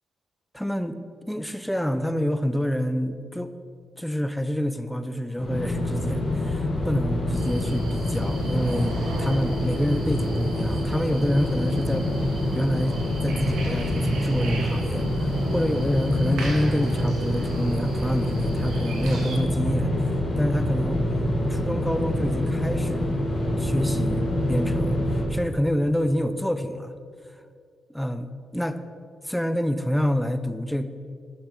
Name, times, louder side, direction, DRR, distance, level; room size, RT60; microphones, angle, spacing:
voice 1, 0.5-1.0 1.3-3.5 4.0-12.1 12.5-20.1 20.4-21.0 21.5-23.2 23.6-26.9 27.9-28.8 29.2-30.9, equal, 5° left, 10 dB, 0.7 m, -27 dB
sound 1, 5.4-25.2, left 1 dB, 50° left, 2.7 m, -26 dB
sound 2, 7.3-19.4, right 2 dB, 85° right, 1.6 m, -40 dB
11.5 x 6.3 x 4.8 m, 2.2 s
supercardioid pair, 55°, 0 cm